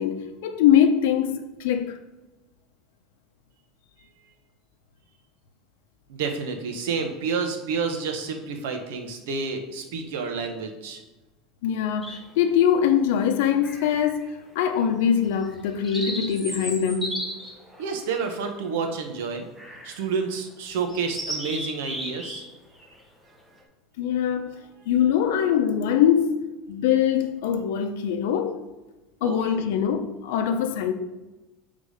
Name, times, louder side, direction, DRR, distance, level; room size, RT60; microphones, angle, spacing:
voice 1, 0.0-2.0 11.6-14.3 14.5-17.2 24.0-24.6 24.9-28.6 29.2-30.9, left 9 dB, 75° left, 0.7 m, -23 dB
voice 2, 6.1-11.0 17.8-19.5 19.8-22.4 29.2-29.7, right 5 dB, 80° right, 1.0 m, -29 dB
sound 1, 12.0-12.5 13.6-14.3 14.7-14.9 15.4-18.9 19.6-20.0 20.4-20.5 20.9-22.4 22.7-23.0, equal, ahead, 0.8 m, -35 dB
6.4 x 3.7 x 5.0 m
cardioid pair, 175°, 0 cm